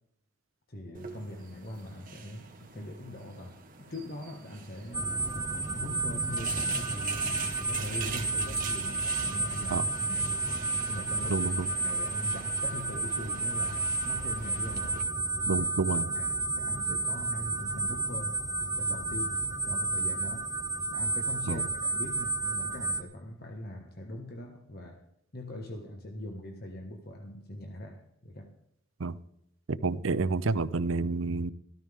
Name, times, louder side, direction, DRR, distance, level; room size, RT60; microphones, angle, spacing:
voice 1, 0.7-5.1 5.7-10.5 10.9-11.5 11.8-15.0 15.5-15.7 16.0-18.4 18.8-20.5 20.9-25.0 25.3-28.6, left 1 dB, 50° left, 1.4 m, -42 dB
sound 1, 0.9-15.0, right 5 dB, 40° right, 1.8 m, -44 dB
sound 2, 4.9-23.0, right 3 dB, 15° right, 0.5 m, -31 dB
voice 2, 11.3-11.7 15.5-16.1 21.5-21.7 29.0-29.2 29.7-31.5, right 3 dB, 75° right, 0.6 m, -29 dB
14.0 x 13.5 x 3.6 m
head